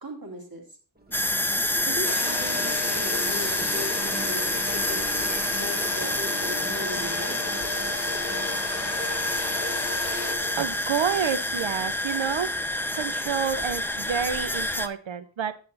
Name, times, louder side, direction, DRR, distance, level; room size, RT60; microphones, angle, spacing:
voice 1, 0.0-0.6 1.8-7.4, equal, 50° right, 1 dB, 2.3 m, -38 dB
sound 1, 1.0-10.5, left 1 dB, 20° right, 1.1 m, -38 dB
sound 2, 1.1-14.9, left 1 dB, 5° left, 0.5 m, -28 dB
sound 3, 2.1-10.4, left 5 dB, 55° left, 1.0 m, -36 dB
voice 2, 10.6-12.5 12.9-15.6, right 8 dB, 75° right, 12 dB, 0.8 m, -29 dB
8.2 x 6.8 x 4.0 m, 0.38 s
wide cardioid pair, 70°, 47 cm